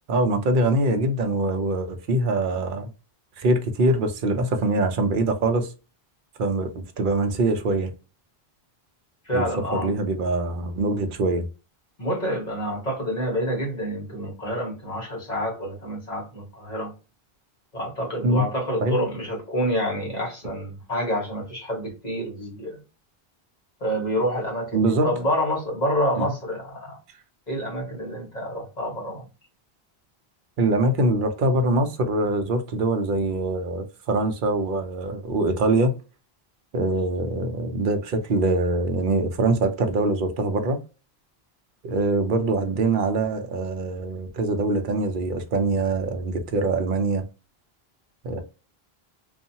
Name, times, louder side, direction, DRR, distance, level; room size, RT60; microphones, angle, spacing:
voice 1, 0.1-2.9 3.4-5.7 6.4-7.9 9.3-9.5 9.7-11.5 18.2-18.4 18.8-19.0 24.7-25.1 26.2-26.3 30.6-35.9 36.7-40.8 41.8-47.2 48.2-48.4, right 2 dB, 60° right, 0.7 m, -23 dB
voice 2, 9.2-9.9 12.0-16.9 17.7-22.8 23.8-27.0 27.5-29.3, equal, 45° left, 1.4 m, -28 dB
2.7 x 2.4 x 2.7 m
omnidirectional pair, 1.0 m